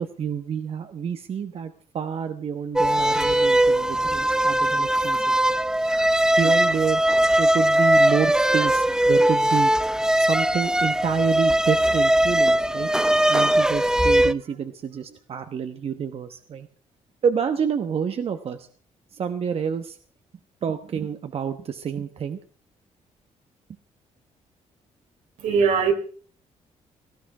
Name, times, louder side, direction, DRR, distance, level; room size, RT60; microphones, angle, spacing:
voice 1, 0.0-5.6 6.4-7.0 7.4-9.7 10.2-12.9 13.3-16.7 17.2-18.7 19.1-20.0 20.6-22.4, right 7 dB, 50° right, 8 dB, 1.1 m, -28 dB
sound 1, 2.7-14.3, right 1 dB, 5° right, 0.6 m, -20 dB
voice 2, 25.4-25.9, right 6 dB, 80° right, 4 dB, 3.6 m, -20 dB
18.5 x 14.0 x 4.9 m, 0.43 s
cardioid pair, 115°, 13 cm